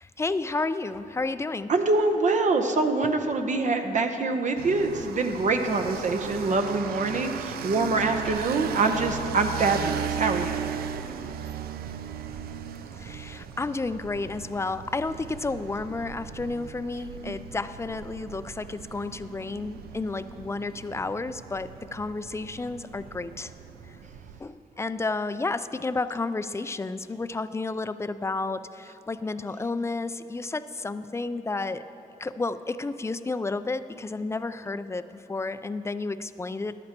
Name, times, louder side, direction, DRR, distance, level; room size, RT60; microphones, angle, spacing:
voice 1, 0.0-1.7 13.0-23.5 24.4-31.8 32.2-36.8, left 3 dB, 20° left, 13 dB, 0.4 m, -31 dB
voice 2, 1.7-10.6 17.3-17.4, right 3 dB, 55° right, 5 dB, 0.8 m, -25 dB
sound 1, 4.6-24.4, right 8 dB, 80° right, 0.4 m, -37 dB
14.0 x 11.0 x 2.9 m, 3.0 s
cardioid pair, 70°, 15 cm